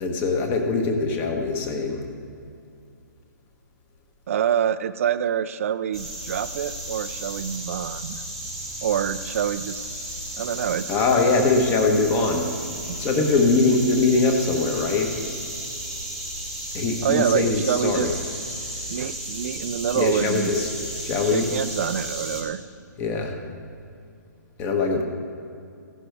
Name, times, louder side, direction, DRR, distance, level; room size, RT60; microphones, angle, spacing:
voice 1, 0.0-2.0 10.9-12.5 13.0-15.1 16.7-18.1 20.0-20.7 21.0-21.5 23.0-23.3 24.6-25.0, left 3 dB, 20° left, 3 dB, 1.1 m, -22 dB
voice 2, 4.3-8.2 8.8-9.8 10.4-10.9 12.9-13.0 17.0-18.2 18.9-20.5 21.3-22.6, right 9 dB, 45° right, 14 dB, 0.4 m, -26 dB
sound 1, 5.9-22.4, right 1 dB, 5° left, 1.4 m, -34 dB
15.0 x 11.5 x 3.4 m, 2.5 s
hypercardioid pair, 165°, 10 cm